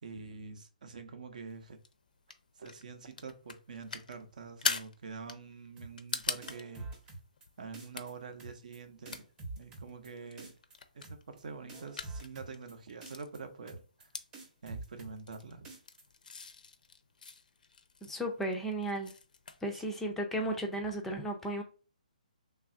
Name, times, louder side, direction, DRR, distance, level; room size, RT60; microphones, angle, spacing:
voice 1, 0.0-1.8 2.6-6.9 7.6-9.2 9.6-10.5 10.9-14.1 14.6-15.7 19.7-19.8, right 4 dB, 60° right, 0.7 m, -46 dB
sound 1, 1.5-19.7, left 5 dB, 75° left, 0.5 m, -43 dB
sound 2, 5.8-6.1 6.4-7.5 7.7-8.1 8.4-8.8 9.0-10.1 10.4-10.8 11.0-11.4 11.7-12.7 13.0-13.4 13.7-14.0 14.3-15.4 15.6-16.0, right 3 dB, 15° right, 0.7 m, -46 dB
voice 2, 18.1-19.1 19.6-21.6, right 1 dB, 5° left, 0.4 m, -34 dB
3.2 x 2.4 x 3.7 m
hypercardioid pair, 150°, 5 cm